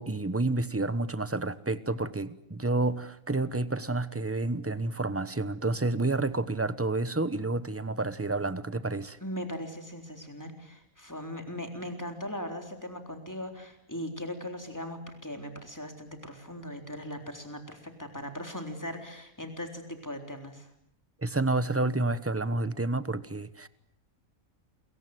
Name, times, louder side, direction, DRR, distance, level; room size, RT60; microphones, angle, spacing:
voice 1, 0.0-9.2 21.2-23.7, right 2 dB, 10° right, 0.9 m, -29 dB
voice 2, 9.2-20.7, left 1 dB, 10° left, 3.9 m, -39 dB
29.5 x 23.0 x 8.0 m
omnidirectional pair, 1.5 m